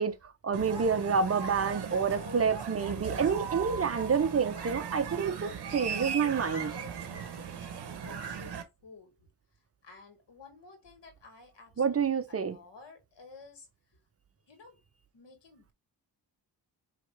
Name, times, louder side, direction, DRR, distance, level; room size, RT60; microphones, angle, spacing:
voice 1, 0.0-6.7 11.8-12.6, right 6 dB, 30° right, 0.8 m, -28 dB
sound 1, 0.5-8.6, right 7 dB, 60° right, 1.1 m, -38 dB
voice 2, 1.4-2.4 2.7-3.3 3.6-9.1 9.8-13.7 14.5-14.8 15.1-15.7, left 4 dB, 70° left, 2.1 m, -50 dB
4.8 x 3.3 x 3.4 m
cardioid pair, 85°, 44 cm